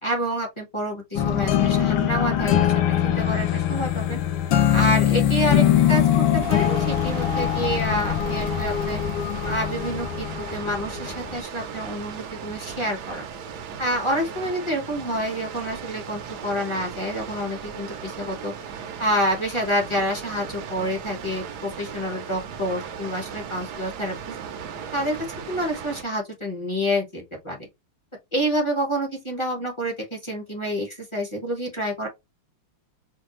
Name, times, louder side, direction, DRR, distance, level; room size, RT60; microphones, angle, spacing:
voice 1, 0.0-4.2 4.7-9.0 9.4-13.3 13.8-18.5 19.0-24.1 24.9-25.2 25.5-27.7 28.3-32.1, equal, 20° left, 0.8 m, -28 dB
sound 1, 1.2-11.4, left 10 dB, 75° left, 1.5 m, -22 dB
Water, 6.4-26.0, right 7 dB, 65° right, 1.0 m, -37 dB
5.1 x 2.3 x 3.0 m
omnidirectional pair, 2.3 m